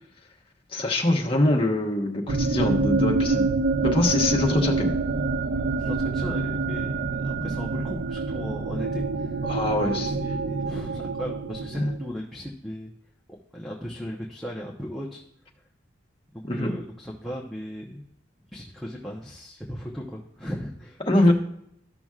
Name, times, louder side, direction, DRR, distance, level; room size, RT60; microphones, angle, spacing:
voice 1, 0.7-3.5 3.8-4.9 9.5-10.2 11.8-11.9 16.4-16.7 21.1-21.3, left 1 dB, 30° left, 1 dB, 1.2 m, -23 dB
sound 1, 2.3-12.1, right 3 dB, 70° right, 0.5 m, -26 dB
voice 2, 5.8-9.4 9.7-12.9 13.5-15.2 16.3-18.0 18.5-21.3, equal, ahead, -4 dB, 0.9 m, -37 dB
13.5 x 6.0 x 2.4 m, 0.71 s
head